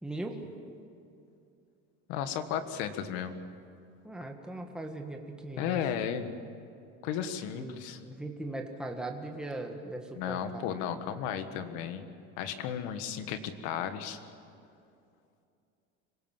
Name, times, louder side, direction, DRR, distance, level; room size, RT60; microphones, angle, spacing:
voice 1, 0.0-0.4 4.0-6.2 7.5-10.6, right 2 dB, 5° right, 2 dB, 1.8 m, -39 dB
voice 2, 2.1-3.4 5.6-6.3 7.0-8.0 10.2-12.0 12.4-14.2, left 8 dB, 75° left, 9 dB, 1.7 m, -34 dB
26.0 x 18.0 x 7.4 m, 2.6 s
cardioid pair, 135°, 30 cm